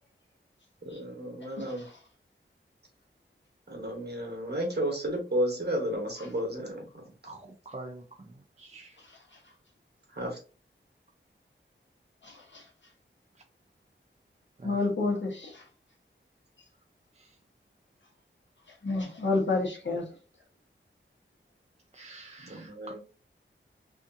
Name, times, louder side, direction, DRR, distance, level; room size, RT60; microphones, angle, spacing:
voice 1, 0.8-1.8 3.7-7.0 10.1-10.4 22.4-23.0, equal, 50° right, 1 dB, 1.0 m, -32 dB
voice 2, 7.2-8.3 8.6-9.0 14.6-14.8 17.2-17.3 21.9-23.0, right 2 dB, 30° right, -1 dB, 0.4 m, -46 dB
voice 3, 12.2-12.6 14.6-15.6 18.8-20.0, left 3 dB, 60° left, -1 dB, 1.0 m, -29 dB
2.6 x 2.5 x 2.5 m, 0.35 s
wide cardioid pair, 60°, 21 cm